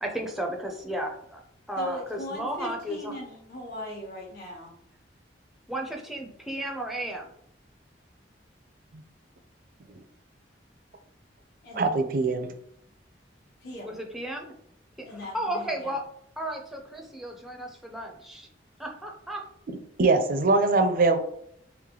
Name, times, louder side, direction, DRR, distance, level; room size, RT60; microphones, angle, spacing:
voice 1, 0.0-1.4 1.7-3.1 5.7-7.3 13.9-14.5 15.1-16.0 16.4-18.5 18.8-19.4, right 1 dB, ahead, 1 dB, 0.6 m, -34 dB
voice 2, 1.8-4.7 11.6-11.9 13.6-14.0 15.1-15.9, left 2 dB, 55° left, -4 dB, 1.2 m, -39 dB
voice 3, 11.7-12.5 20.0-21.2, right 3 dB, 50° right, 7 dB, 0.5 m, -22 dB
3.3 x 3.0 x 3.7 m, 0.69 s
head